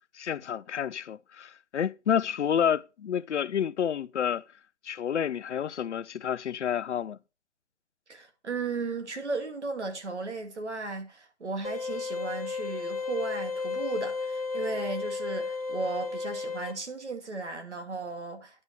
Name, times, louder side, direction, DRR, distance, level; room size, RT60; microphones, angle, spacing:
voice 1, 0.1-4.4 4.8-7.2, left 8 dB, 80° left, 0.5 m, -29 dB
voice 2, 8.1-18.6, right 3 dB, 85° right, 2.1 m, -35 dB
sound 1, 11.6-16.7, left 4 dB, 35° left, 0.8 m, -33 dB
9.7 x 4.8 x 4.0 m
hypercardioid pair, 180°, 34 cm